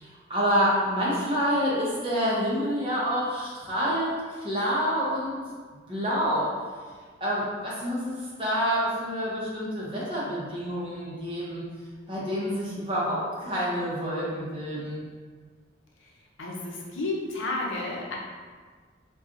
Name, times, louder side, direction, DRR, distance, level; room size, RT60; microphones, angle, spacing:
voice 1, 0.0-5.4 5.9-6.5 7.2-11.6 12.1-15.0, equal, 25° right, -7 dB, 0.7 m, -28 dB
voice 2, 16.4-18.1, left 2 dB, 85° left, -2 dB, 0.6 m, -31 dB
3.9 x 2.3 x 2.5 m, 1.5 s
head